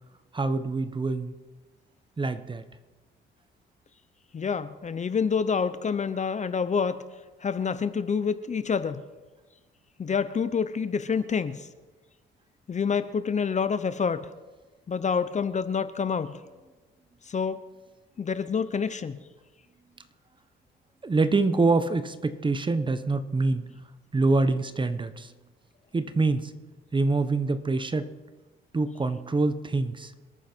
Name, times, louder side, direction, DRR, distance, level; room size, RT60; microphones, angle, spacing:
voice 1, 0.3-1.3 2.2-2.6 21.0-23.6 24.1-25.3 25.9-26.5 26.9-28.1 28.7-30.1, right 3 dB, 25° right, 11 dB, 1.1 m, -25 dB
voice 2, 4.3-7.0 7.4-9.0 10.0-11.7 12.7-14.3 14.9-16.4 17.3-17.6 18.2-19.2, left 6 dB, 35° left, 13 dB, 0.9 m, -27 dB
27.0 x 9.3 x 4.6 m, 1.2 s
cardioid pair, 90°, 20 cm